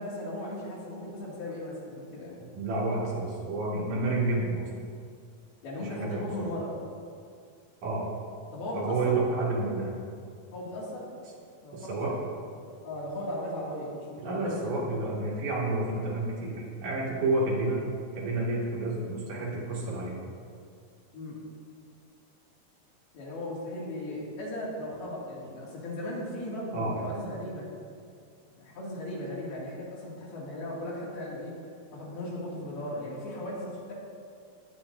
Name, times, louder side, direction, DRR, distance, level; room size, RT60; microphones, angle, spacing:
voice 1, 0.0-2.4 5.6-6.7 8.5-9.2 10.5-11.1 11.6-12.2 12.8-15.1 21.1-21.4 23.1-27.7 28.5-31.5 31.9-33.9, left 1 dB, 85° left, -6 dB, 4.5 m, -37 dB
voice 2, 2.4-4.7 5.8-6.5 7.8-8.1 8.7-9.9 11.7-12.1 14.2-17.9 18.2-20.2 26.7-27.0, right 2 dB, 55° right, -6 dB, 3.7 m, -30 dB
18.0 x 10.0 x 2.8 m, 2.2 s
omnidirectional pair, 4.3 m